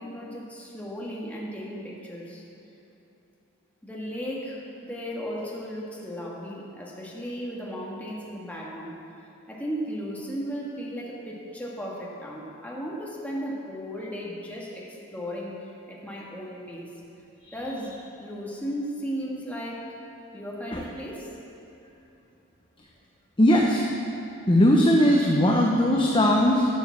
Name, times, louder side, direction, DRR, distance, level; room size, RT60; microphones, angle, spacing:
voice 1, 0.0-2.4 3.8-9.0 9.5-16.9 17.5-19.9 20.3-21.3, equal, 5° left, -4 dB, 1.6 m, -35 dB
voice 2, 23.4-23.8 24.5-26.7, equal, 25° left, -1 dB, 0.8 m, -19 dB
11.5 x 7.1 x 7.1 m, 2.9 s
head